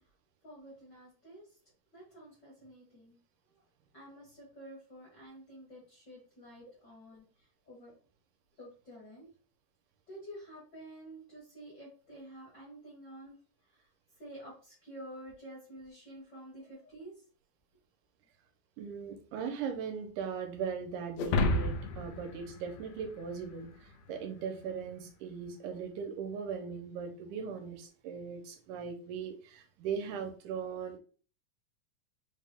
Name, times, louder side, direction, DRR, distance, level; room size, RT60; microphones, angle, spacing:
voice 1, 0.4-1.5 1.9-3.2 3.9-7.2 7.7-7.9 8.6-9.3 10.1-13.4 13.7-13.9 14.2-17.1, right 1 dB, 55° left, -5 dB, 1.3 m, -50 dB
voice 2, 18.8-31.0, right 6 dB, 80° right, 4 dB, 2.1 m, -39 dB
sound 1, 21.2-23.7, left 2 dB, 85° left, 1.5 m, -31 dB
5.2 x 2.2 x 3.4 m, 0.40 s
omnidirectional pair, 3.7 m